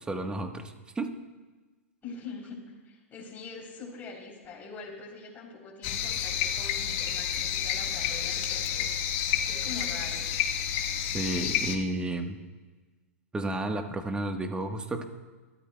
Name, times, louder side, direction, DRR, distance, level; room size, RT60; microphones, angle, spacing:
voice 1, 0.1-1.1 11.1-12.4 13.3-15.1, right 2 dB, 10° right, 6 dB, 1.2 m, -32 dB
voice 2, 2.0-8.9 9.5-10.3, left 4 dB, 25° left, -4 dB, 3.3 m, -43 dB
sound 1, 5.8-11.8, left 9 dB, 50° left, 1.2 m, -30 dB
26.0 x 13.0 x 2.2 m, 1.3 s
hypercardioid pair, 115°, 8 cm